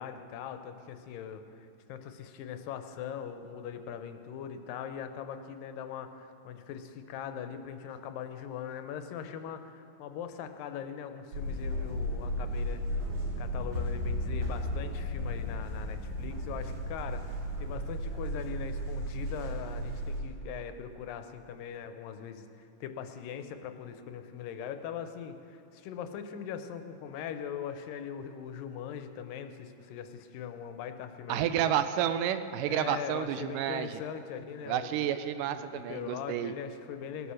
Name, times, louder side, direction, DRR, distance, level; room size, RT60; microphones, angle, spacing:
voice 1, 0.0-12.8 13.4-31.7 32.7-35.0 35.5-37.3, left 8 dB, 85° left, 8 dB, 2.5 m, -41 dB
sound 1, 11.3-20.2, equal, 55° right, 3.3 m, -34 dB
voice 2, 31.3-33.9 34.7-36.5, right 10 dB, 80° right, 10 dB, 2.1 m, -30 dB
18.5 x 8.5 x 6.3 m, 2.7 s
omnidirectional pair, 3.9 m